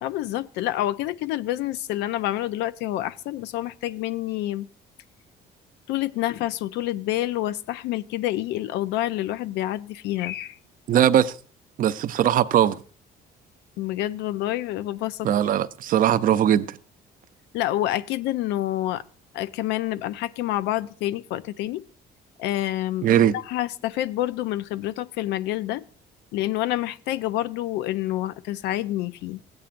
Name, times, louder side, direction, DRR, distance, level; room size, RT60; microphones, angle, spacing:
voice 1, 0.0-4.7 5.9-10.6 13.8-15.3 17.5-19.0 19.3-21.8 22.4-23.1 23.3-25.8 26.3-29.4, left 14 dB, 85° left, 0.4 m, -28 dB
voice 2, 10.9-11.3 11.8-12.8 15.2-16.6 23.0-23.4, right 10 dB, 55° right, 0.5 m, -20 dB
15.5 x 8.7 x 2.5 m
cardioid pair, 110°, 17 cm